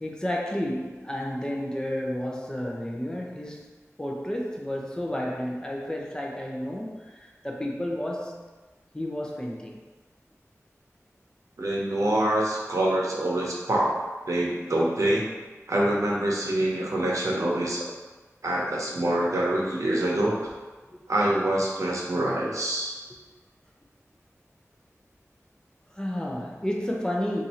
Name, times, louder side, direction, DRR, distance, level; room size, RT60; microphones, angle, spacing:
voice 1, 0.0-3.7 4.0-8.4 8.9-9.8 20.9-21.0 26.0-27.4, left 1 dB, 15° left, -1 dB, 0.6 m, -31 dB
voice 2, 11.6-13.9 14.3-15.2 15.7-17.8 18.4-20.4 21.1-22.9, right 1 dB, 75° right, -4 dB, 0.7 m, -25 dB
2.7 x 2.5 x 4.2 m, 1.3 s
wide cardioid pair, 50°, 6 cm